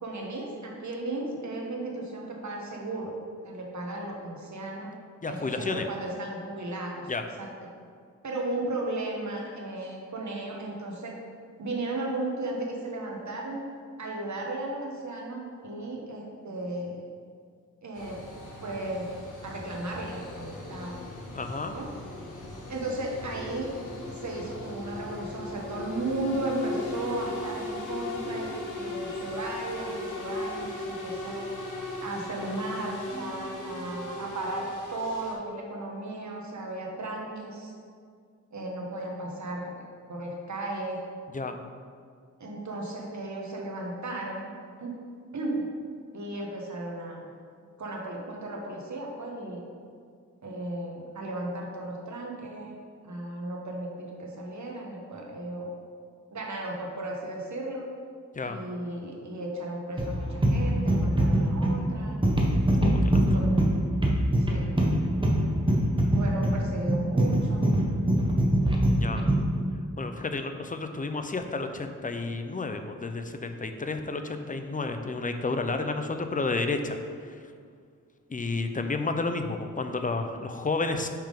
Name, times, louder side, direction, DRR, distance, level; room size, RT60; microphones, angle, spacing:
voice 1, 0.0-3.1 3.4-4.9 5.3-7.1 7.4-7.5 8.2-11.1 11.6-13.7 14.0-17.0 17.8-18.2 18.6-19.1 19.4-21.0 21.7-21.9 22.7-23.7 24.1-28.5 28.8-31.5 32.0-37.7 38.5-39.8 40.1-41.0 42.4-44.4 44.8-44.9 45.3-45.7 46.1-47.3 47.8-49.6 50.4-52.8 53.0-55.7 56.3-57.9 58.4-62.2 63.1-63.5 64.4-64.7 66.1-67.7, right 1 dB, 65° right, -1 dB, 1.2 m, -35 dB
voice 2, 5.2-5.9 7.1-7.2 21.3-21.7 41.3-41.6 58.3-58.6 62.8-63.2 68.9-69.2 70.0-77.4 78.3-81.1, left 3 dB, 25° left, 6 dB, 0.5 m, -31 dB
sound 1, 17.9-35.3, left 1 dB, 80° left, 1.0 m, -38 dB
sound 2, 60.0-69.5, right 1 dB, 15° right, 0.9 m, -23 dB
5.7 x 3.6 x 5.1 m, 2.1 s
cardioid pair, 60°, 31 cm